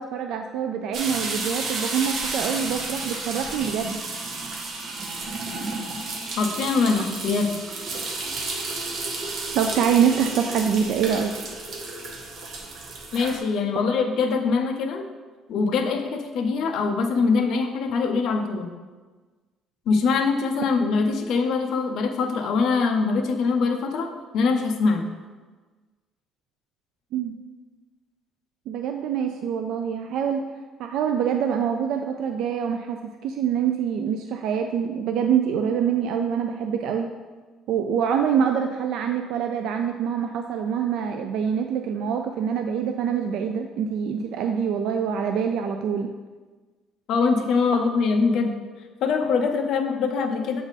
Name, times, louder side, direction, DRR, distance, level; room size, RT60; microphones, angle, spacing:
voice 1, 0.0-4.0 9.5-11.3 27.1-27.4 28.7-30.4 30.8-37.1 37.7-46.1, right 7 dB, 65° right, 5 dB, 0.3 m, -25 dB
sound 1, 0.9-13.4, right 3 dB, 45° right, 0.8 m, -32 dB
voice 2, 6.4-7.6 13.1-15.0 15.5-18.7 19.9-24.1 24.3-25.1 47.1-48.6 49.0-50.6, left 4 dB, 55° left, 4 dB, 0.6 m, -23 dB
7.2 x 3.4 x 4.0 m, 1.3 s
cardioid pair, 160°, 0 cm